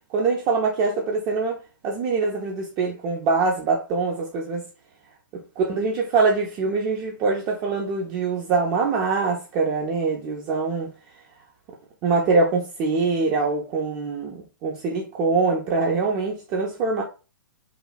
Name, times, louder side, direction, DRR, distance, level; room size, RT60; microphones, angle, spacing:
voice 1, 0.1-4.6 5.6-10.9 12.0-17.0, right 4 dB, 25° right, 0.4 m, -24 dB
2.9 x 2.1 x 2.3 m
figure-of-eight pair, 110°, 12 cm